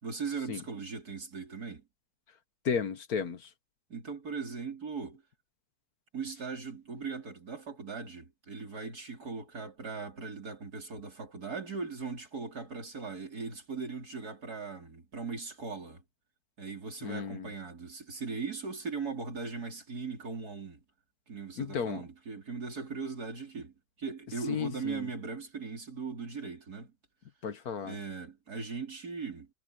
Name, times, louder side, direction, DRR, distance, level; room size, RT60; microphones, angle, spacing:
voice 1, 0.0-1.8 3.9-5.2 6.1-16.0 16.6-20.8 21.3-26.9 27.8-29.5, right 5 dB, 55° right, 4.3 m, -39 dB
voice 2, 2.7-3.5 17.0-17.5 21.6-22.0 24.5-25.1 27.4-28.0, left 6 dB, 60° left, 1.7 m, -33 dB
omnidirectional pair, 1.9 m